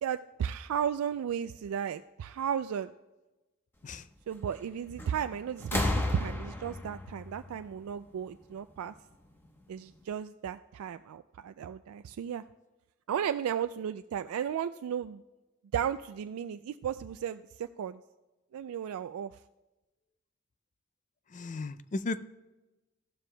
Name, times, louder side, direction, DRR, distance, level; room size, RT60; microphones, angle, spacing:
voice 1, 0.0-2.9 4.3-8.9 9.7-12.4 13.1-15.2 15.7-18.0 18.5-19.4, right 8 dB, 85° right, 10 dB, 0.3 m, -34 dB
sound 1, 5.0-5.3 5.6-8.4 9.5-9.6, left 1 dB, 10° left, 1.0 m, -33 dB
voice 2, 21.3-22.2, left 3 dB, 35° left, 14 dB, 0.4 m, -35 dB
15.0 x 12.0 x 2.2 m, 1.1 s
head